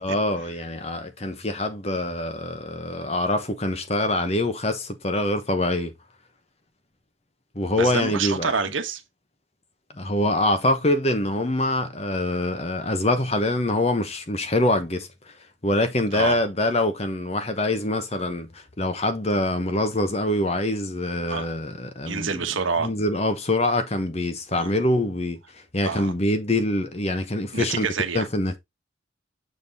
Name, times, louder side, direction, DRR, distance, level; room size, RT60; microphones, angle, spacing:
voice 1, 0.0-5.9 7.5-8.5 9.9-15.1 15.6-22.5 22.8-27.9 28.1-28.6, left 1 dB, 30° left, 1.0 m, -25 dB
voice 2, 7.8-9.0 16.1-16.4 21.3-21.5 22.0-22.9 24.5-24.7 25.8-26.1 27.5-28.3, right 5 dB, 80° right, 1.2 m, -27 dB
7.0 x 4.0 x 3.9 m
head